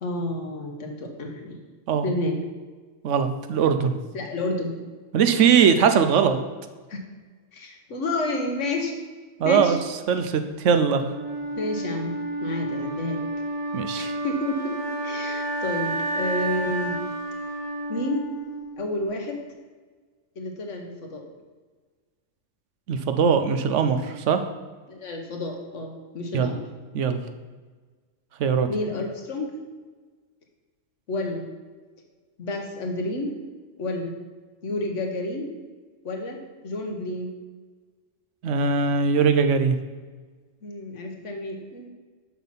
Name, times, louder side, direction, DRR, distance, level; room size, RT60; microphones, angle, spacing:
voice 1, 0.0-1.6 2.0-2.4 4.1-4.8 6.9-7.0 7.5-8.9 9.4-9.8 11.6-13.3 13.9-17.0 17.9-18.3 18.8-19.4 20.4-21.2 24.9-26.6 28.7-29.6 31.1-31.5 32.4-33.3 33.8-34.1 34.6-35.5 36.0-37.3 40.6-41.9, left 2 dB, 75° left, 2 dB, 1.5 m, -30 dB
voice 2, 3.0-4.0 5.1-6.4 9.4-9.8 10.1-11.0 13.7-14.1 22.9-24.4 26.3-26.6 26.9-27.2 28.4-28.7 38.4-39.8, right 6 dB, 75° right, 8 dB, 1.0 m, -21 dB
Wind instrument woodwind instrument, 10.9-18.9, right 2 dB, 30° left, 1.8 m, -31 dB
7.2 x 5.9 x 5.7 m, 1.4 s
omnidirectional pair, 1.3 m